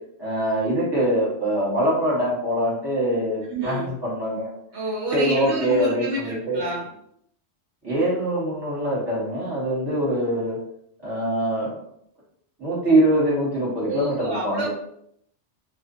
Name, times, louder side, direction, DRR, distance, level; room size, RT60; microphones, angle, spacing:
voice 1, 0.2-4.5 5.1-6.6 7.8-10.6 11.0-11.7 12.6-14.7, right 1 dB, 20° right, -7 dB, 1.3 m, -23 dB
voice 2, 3.5-3.9 4.7-6.9 13.8-14.7, right 1 dB, 70° right, -4 dB, 0.9 m, -28 dB
2.5 x 2.5 x 2.6 m, 0.70 s
omnidirectional pair, 1.2 m